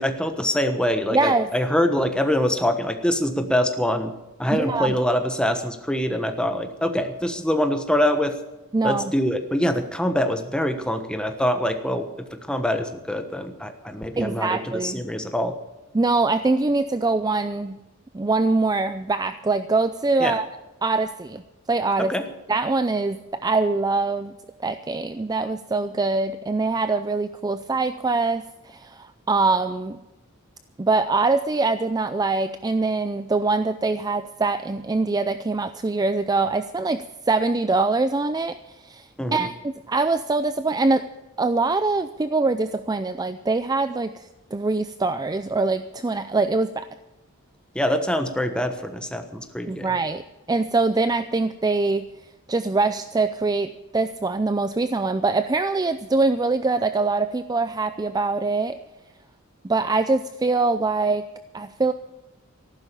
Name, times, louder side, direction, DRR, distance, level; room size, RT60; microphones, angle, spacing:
voice 1, 0.0-4.1 4.4-8.4 8.8-12.1 12.5-15.6 20.2-20.4 22.0-22.2 39.2-39.5 47.7-49.9, left 1 dB, 5° left, 7 dB, 1.2 m, -24 dB
voice 2, 1.1-1.5 4.5-4.9 8.7-9.1 14.2-15.0 15.9-17.8 18.1-20.5 20.8-21.4 21.7-22.1 22.5-24.3 24.6-30.0 30.8-38.6 38.8-41.1 41.4-46.9 49.7-50.2 50.5-52.1 52.5-58.8 59.6-61.3 61.5-61.9, right 3 dB, 20° right, 11 dB, 0.4 m, -23 dB
14.0 x 12.0 x 6.9 m, 1.0 s
head